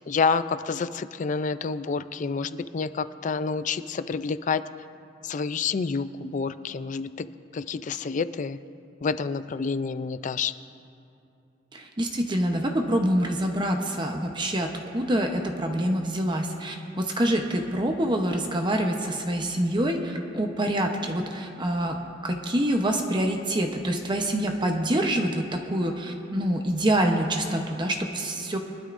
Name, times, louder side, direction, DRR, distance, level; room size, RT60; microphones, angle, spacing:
voice 1, 0.1-4.6 5.2-7.3 7.5-8.6 9.0-10.5, left 5 dB, 45° left, 13 dB, 0.4 m, -28 dB
voice 2, 11.7-22.0 22.2-28.6, right 1 dB, 25° right, 3 dB, 0.8 m, -26 dB
23.0 x 12.5 x 2.6 m, 2.6 s
head